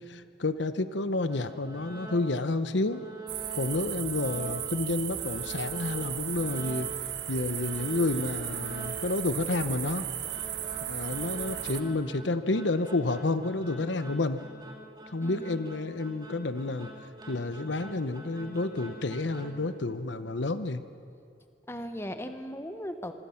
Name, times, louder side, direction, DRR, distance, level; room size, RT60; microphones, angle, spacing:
voice 1, 0.0-3.0 3.6-6.9 7.3-10.1 10.9-14.4 15.1-16.9 17.3-20.8, left 2 dB, 85° left, 11 dB, 0.9 m, -30 dB
sound 1, 1.3-2.5 2.8-4.8 5.1-7.1 7.4-19.7, right 2 dB, 25° right, 2.7 m, -45 dB
sound 2, 3.3-11.8, right 12 dB, 80° right, 1.2 m, -36 dB
voice 2, 15.2-15.6 21.7-23.1, equal, 15° left, 7 dB, 1.2 m, -38 dB
26.0 x 24.5 x 5.9 m, 2.5 s
head